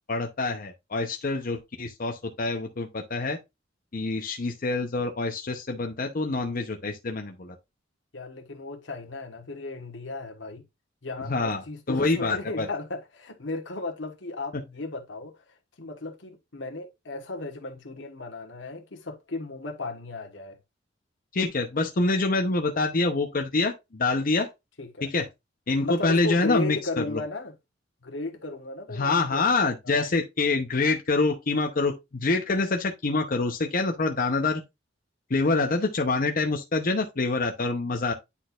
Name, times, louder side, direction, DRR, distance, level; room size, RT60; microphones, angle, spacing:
voice 1, 0.1-3.4 3.9-7.5 11.3-11.6 11.9-12.7 21.3-24.5 25.0-25.3 25.7-26.8 27.1-27.2 29.0-34.6 35.3-38.1, left 3 dB, 50° left, 0.8 m, -26 dB
voice 2, 8.1-10.6 11.0-15.4 15.8-20.6 24.8-25.1 25.8-27.6 28.0-29.5 29.8-30.1, left 2 dB, 85° left, 1.4 m, -35 dB
9.9 x 4.3 x 2.5 m
head